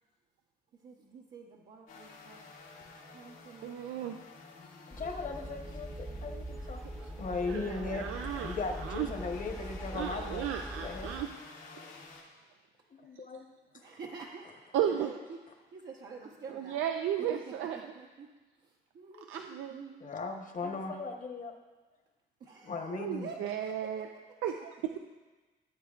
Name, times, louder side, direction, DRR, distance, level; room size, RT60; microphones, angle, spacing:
voice 1, 0.8-2.5 3.1-3.8 13.7-16.8 17.2-18.3 18.6-20.1 22.4-24.2, right 4 dB, 60° right, -3 dB, 1.0 m, -48 dB
sound 1, 1.9-12.2, left 3 dB, 90° left, 2.3 m, -52 dB
voice 2, 3.6-4.2 7.0-7.1 7.4-8.6 8.9-9.1 9.9-11.3 14.7-15.1 16.5-17.8 19.3-19.8 22.9-24.1 24.4-25.0, right 10 dB, 85° right, 4 dB, 0.5 m, -34 dB
voice 3, 4.9-8.1 8.4-10.5 10.8-11.2 13.0-13.4 20.0-21.5 22.6-23.3, left 4 dB, 40° left, 4 dB, 1.2 m, -38 dB
sound 2, 4.9-11.3, right 1 dB, ahead, 0.5 m, -42 dB
15.5 x 8.1 x 2.5 m, 1.3 s
cardioid pair, 90°, 20 cm